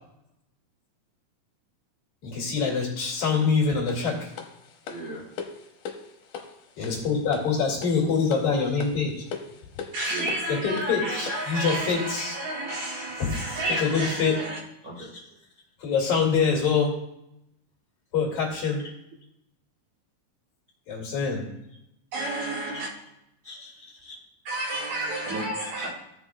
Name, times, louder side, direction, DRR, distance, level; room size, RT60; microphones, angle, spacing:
voice 1, 2.2-4.3 6.8-9.2 10.5-12.4 13.2-13.3 13.7-14.4 15.8-16.9 18.1-18.9 20.9-21.5, left 5 dB, 55° left, -3 dB, 3.4 m, -25 dB
sound 1, 3.9-11.6, left 6 dB, 70° left, 2.2 m, -41 dB
voice 2, 4.9-5.2 10.1-10.4 14.8-15.3 22.7-22.8 23.4-24.1 25.2-25.9, right 2 dB, 40° right, -6 dB, 1.4 m, -38 dB
voice 3, 9.9-14.6 22.1-22.9 24.5-25.9, right 1 dB, 70° right, 0 dB, 1.9 m, -31 dB
16.0 x 6.1 x 2.3 m, 0.84 s
omnidirectional pair, 4.1 m